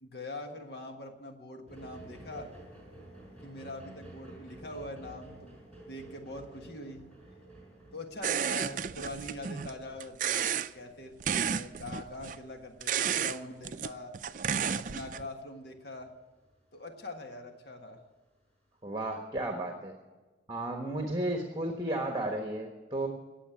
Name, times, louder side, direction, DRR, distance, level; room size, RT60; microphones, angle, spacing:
voice 1, 0.0-2.5 3.4-5.6 5.9-7.1 7.9-14.1 14.8-16.1 16.7-18.0, left 2 dB, 65° left, 4 dB, 1.5 m, -43 dB
sound 1, 1.7-17.2 17.8-17.9, right 1 dB, 5° left, 5.6 m, -53 dB
sound 2, 8.2-9.7 10.0-10.7 11.2-12.4 12.8-13.4 13.6-15.3, right 8 dB, 45° right, 0.4 m, -32 dB
voice 2, 18.8-19.9 20.5-23.1, right 1 dB, 20° right, 3 dB, 1.3 m, -33 dB
18.0 x 7.5 x 8.6 m, 1.3 s
head